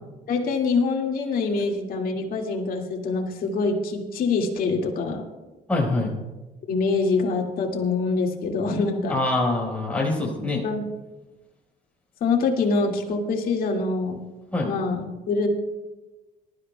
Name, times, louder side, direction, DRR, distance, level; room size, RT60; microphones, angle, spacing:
voice 1, 0.3-5.3 6.7-9.2 10.6-10.9 12.2-14.2 14.6-15.5, left 4 dB, 60° left, 1 dB, 2.0 m, -25 dB
voice 2, 5.7-6.1 9.1-10.6 14.5-14.7, left 2 dB, 10° left, -3 dB, 4.4 m, -24 dB
22.5 x 12.5 x 2.2 m, 1.1 s
cardioid pair, 110°, 17 cm